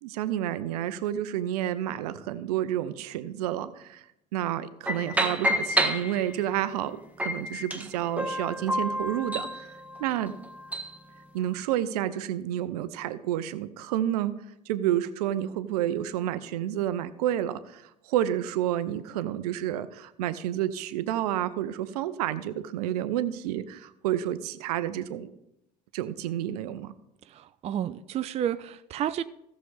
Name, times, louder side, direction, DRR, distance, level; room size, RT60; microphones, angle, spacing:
voice 1, 0.0-4.0 4.3-9.7 10.0-10.3 11.3-14.3 14.7-25.3 25.9-26.9, right 12 dB, 65° right, 0.6 m, -30 dB
sound 1, 4.9-6.6 7.2-11.0, equal, 5° right, 1.3 m, -30 dB
voice 2, 27.3-29.2, right 10 dB, 30° right, 0.4 m, -31 dB
16.0 x 6.7 x 3.5 m
figure-of-eight pair, 60°, 21 cm